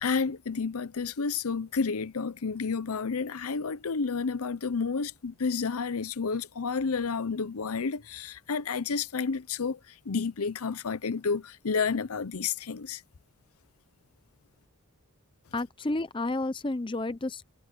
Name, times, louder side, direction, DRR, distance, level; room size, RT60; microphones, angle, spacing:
voice 1, 0.0-13.0, left 5 dB, 80° left, 0.7 m, -30 dB
voice 2, 15.5-17.5, left 2 dB, 20° left, 0.6 m, -31 dB
head